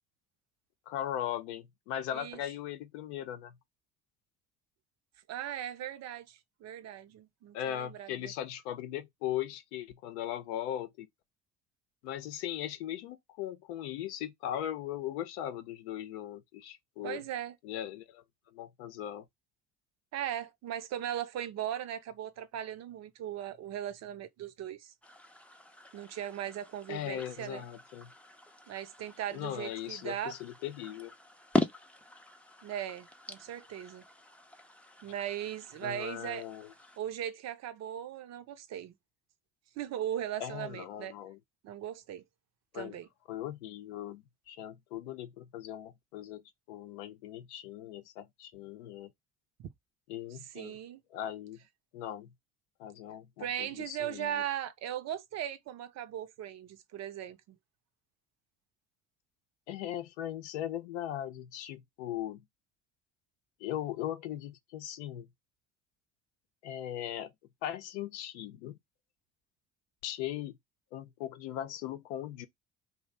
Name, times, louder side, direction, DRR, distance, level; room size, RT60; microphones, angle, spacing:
voice 1, 0.9-3.6 7.5-11.1 12.0-17.2 17.6-18.2 18.5-19.3 26.9-28.1 29.3-31.1 35.8-36.7 40.4-41.4 42.7-43.0 43.3-46.4 46.7-49.1 50.1-50.8 51.1-51.6 51.9-52.3 52.8-54.4 59.7-62.4 63.6-65.3 66.6-67.3 67.6-68.8 70.0-70.6 70.9-72.5, left 11 dB, 80° left, 0.6 m, -39 dB
voice 2, 5.3-8.3 17.0-17.6 20.1-24.9 25.9-27.6 28.7-30.4 32.6-34.0 35.0-36.4 37.0-38.9 39.8-41.1 41.6-42.2 42.7-43.1 50.5-51.0 53.4-57.6, right 11 dB, 50° right, 0.6 m, -38 dB
sound 1, 25.0-37.0, left 2 dB, 5° left, 0.4 m, -41 dB
2.6 x 2.1 x 3.1 m
hypercardioid pair, 65°, 34 cm